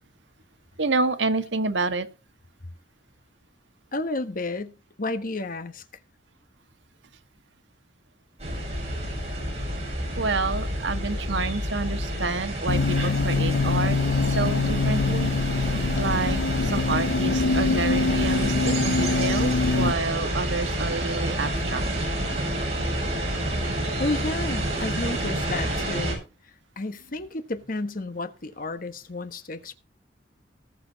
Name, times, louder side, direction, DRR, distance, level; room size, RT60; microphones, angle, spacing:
voice 1, 0.8-2.1 10.2-14.0 14.3-15.3 16.0-21.8, right 3 dB, 90° right, 1.6 m, -28 dB
voice 2, 3.9-4.7 5.0-5.8 24.0-26.2 26.8-29.7, left 2 dB, 50° left, 1.3 m, -31 dB
sound 1, 8.4-26.1, right 1 dB, 35° right, 7.6 m, -29 dB
sound 2, 12.7-19.9, left 3 dB, 85° left, 0.5 m, -24 dB
19.0 x 6.9 x 4.0 m
head